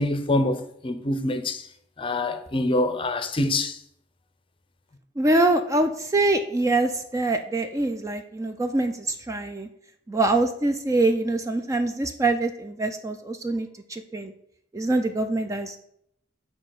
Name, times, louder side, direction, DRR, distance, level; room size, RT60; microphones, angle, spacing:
voice 1, 0.0-1.7 2.0-3.8, left 2 dB, 25° left, 0.6 m, -25 dB
voice 2, 5.2-9.7 10.1-14.3 14.7-15.8, right 2 dB, 15° right, 0.4 m, -24 dB
6.8 x 4.1 x 6.3 m
head